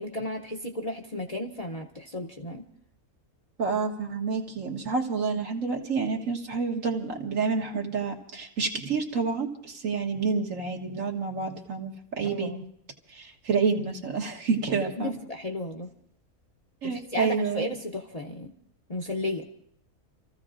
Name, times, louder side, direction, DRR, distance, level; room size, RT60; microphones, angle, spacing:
voice 1, 0.0-2.6 12.2-12.7 15.0-15.9 16.8-18.5 18.9-19.4, left 1 dB, 35° left, 2 dB, 0.8 m, -34 dB
voice 2, 3.6-12.5 13.1-15.1 16.8-17.7, right 5 dB, 70° right, 2 dB, 1.8 m, -29 dB
30.0 x 14.5 x 2.5 m, 0.70 s
omnidirectional pair, 1.4 m